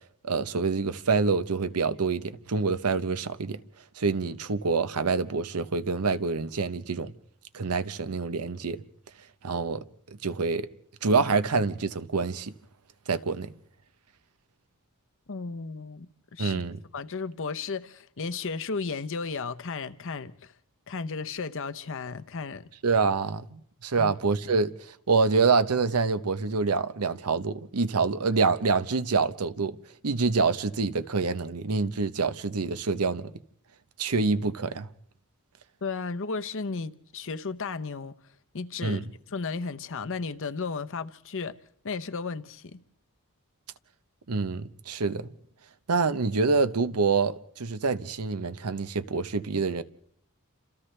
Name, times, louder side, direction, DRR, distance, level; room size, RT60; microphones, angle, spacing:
voice 1, 0.2-3.6 4.0-7.1 7.5-8.8 9.4-9.8 10.2-10.7 11.0-12.5 13.1-13.5 16.4-16.8 22.8-24.7 25.1-29.8 30.0-33.3 34.0-34.9 38.8-39.0 44.3-45.3 45.9-49.8, right 4 dB, 90° right, 0.9 m, -26 dB
voice 2, 15.3-16.6 16.9-20.5 20.9-22.6 23.9-24.1 35.8-38.2 38.5-41.6 41.8-42.8, left 4 dB, 60° left, 0.8 m, -34 dB
29.5 x 27.0 x 3.3 m
head